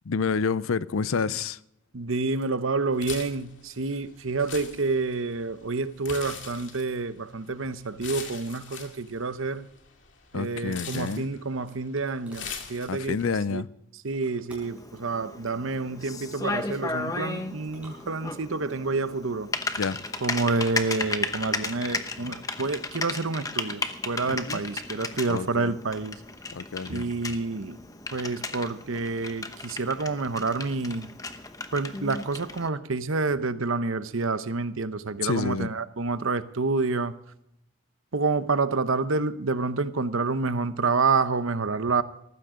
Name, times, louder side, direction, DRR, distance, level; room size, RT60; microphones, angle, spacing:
voice 1, 0.0-1.6 10.3-11.3 12.9-13.7 19.8-20.1 24.3-24.6 25.3-25.7 26.5-27.1 35.2-35.7, left 5 dB, 80° left, 0.5 m, -29 dB
voice 2, 1.9-9.7 10.3-13.6 14.0-19.5 20.2-26.2 26.9-27.8 28.1-31.1 31.7-37.1 38.1-42.0, right 3 dB, 70° right, 0.9 m, -28 dB
sound 1, 2.9-13.3, left 7 dB, 60° left, 2.4 m, -43 dB
sound 2, 11.2-12.6 14.1-14.9 16.2-16.7 17.6-18.6 19.5-20.2, right 1 dB, 5° right, 5.2 m, -53 dB
Typing, 14.6-32.7, left 3 dB, 15° left, 0.9 m, -35 dB
18.5 x 15.0 x 3.8 m
head